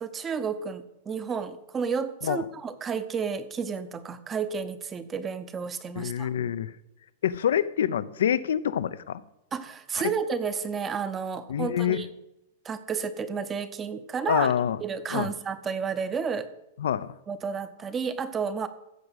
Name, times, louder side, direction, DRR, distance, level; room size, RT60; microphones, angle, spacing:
voice 1, 0.0-6.3 9.5-12.1 12.6-14.5 14.8-16.5 17.3-18.7, right 6 dB, 15° right, 12 dB, 0.7 m, -31 dB
voice 2, 6.0-6.7 7.2-9.2 11.5-12.0 14.3-14.8 15.1-15.3 16.8-17.1, left 9 dB, 85° left, 16 dB, 0.7 m, -26 dB
14.5 x 4.9 x 8.2 m, 0.90 s
supercardioid pair, 165°, 0 cm